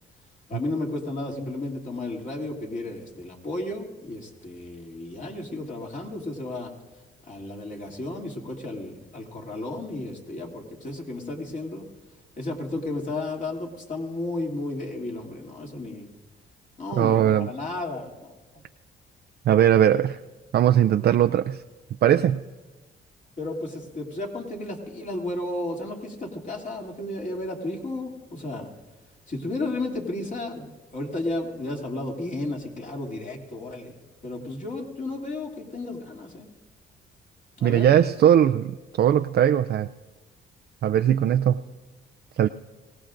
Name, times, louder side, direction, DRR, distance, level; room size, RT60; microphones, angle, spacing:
voice 1, 0.5-6.7 7.2-11.8 12.4-16.1 16.8-18.6 23.4-28.7 29.3-30.7 30.9-34.0 34.2-36.5 37.6-37.8, left 2 dB, 40° left, 0 dB, 2.7 m, -33 dB
voice 2, 17.0-17.5 19.5-20.2 20.5-21.6 22.0-22.4 37.6-39.9 40.8-41.6 42.4-42.5, right 10 dB, 55° right, 8 dB, 0.4 m, -19 dB
23.5 x 18.0 x 2.6 m, 1.2 s
cardioid pair, 90°, 20 cm